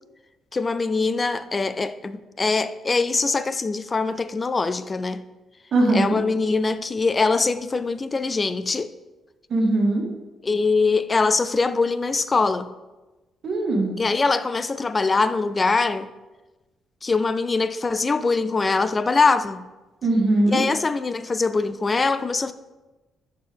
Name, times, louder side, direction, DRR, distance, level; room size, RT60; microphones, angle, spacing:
voice 1, 0.5-5.2 5.9-8.9 10.4-12.7 14.0-16.1 17.0-19.6 20.5-22.5, left 4 dB, 30° left, 0.4 m, -23 dB
voice 2, 5.7-6.2 9.5-10.0 13.4-13.9 20.0-20.6, right 2 dB, 55° right, 1.8 m, -20 dB
11.0 x 4.5 x 3.5 m
cardioid pair, 90°, 0 cm